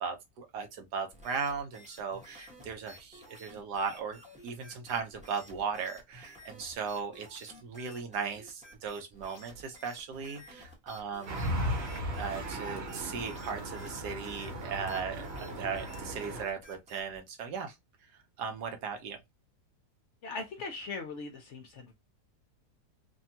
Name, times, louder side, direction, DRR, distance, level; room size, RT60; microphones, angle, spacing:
voice 1, 0.0-11.6 12.2-17.7 18.4-19.2, right 5 dB, 85° right, 1.4 m, -37 dB
sound 1, 1.1-17.2, equal, 10° right, 0.5 m, -53 dB
sound 2, 11.3-16.4, equal, 50° right, 0.9 m, -36 dB
voice 2, 20.2-21.9, left 3 dB, 60° left, 0.8 m, -40 dB
3.3 x 2.3 x 2.7 m
omnidirectional pair, 1.7 m